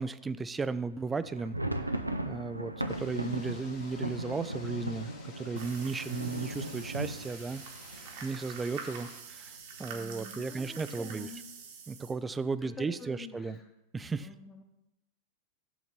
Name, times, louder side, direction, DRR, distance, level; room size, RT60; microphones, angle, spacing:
voice 1, 0.0-1.6 2.3-7.6 8.2-9.5 9.8-11.3 11.9-13.6 13.9-14.3, right 4 dB, 15° right, 14 dB, 0.3 m, -35 dB
sound 1, 1.2-8.9 9.2-9.3 9.6-9.8 10.4-10.9, right 1 dB, 85° right, 0.5 m, -37 dB
sound 2, 2.9-9.2, left 4 dB, 40° left, 1.3 m, -54 dB
sound 3, 5.6-12.1, right 6 dB, 50° right, 1.3 m, -46 dB
voice 2, 9.9-11.5 12.6-13.6 14.2-14.6, left 3 dB, 15° left, 2 dB, 1.0 m, -47 dB
7.7 x 3.9 x 6.7 m, 0.85 s
figure-of-eight pair, 90°, 0 cm